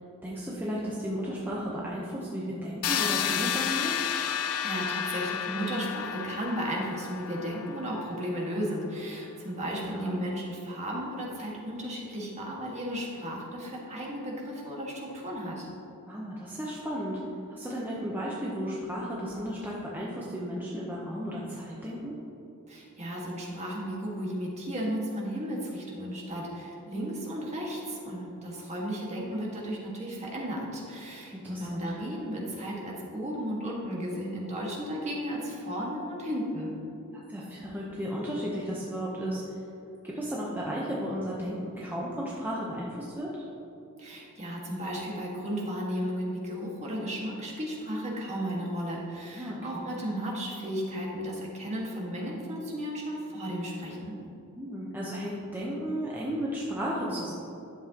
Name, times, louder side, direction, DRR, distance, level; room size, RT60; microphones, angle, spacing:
voice 1, 0.2-3.9 9.8-10.2 16.1-17.2 17.5-22.2 31.3-31.8 37.3-39.4 40.0-43.5 49.4-49.9 54.6-57.3, equal, 10° right, -6 dB, 0.8 m, -34 dB
sound 1, 2.8-8.6, left 9 dB, 85° left, 0.5 m, -32 dB
voice 2, 4.6-15.7 22.7-36.7 44.0-54.2, equal, 30° right, -3 dB, 1.6 m, -34 dB
11.0 x 7.3 x 2.9 m, 2.9 s
head